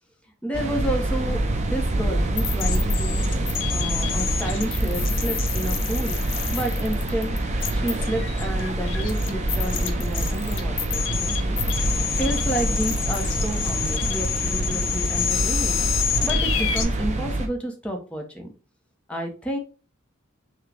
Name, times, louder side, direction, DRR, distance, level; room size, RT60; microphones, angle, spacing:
voice 1, 0.4-3.2 3.7-6.2 6.5-7.3 7.7-11.6 12.2-15.8 16.2-18.5 19.1-19.6, right 1 dB, 5° left, 1 dB, 0.9 m, -30 dB
sound 1, 0.5-17.5, right 1 dB, 30° right, 0.7 m, -26 dB
sound 2, 2.4-16.8, left 9 dB, 60° left, 0.8 m, -29 dB
6.0 x 2.3 x 3.3 m, 0.34 s
head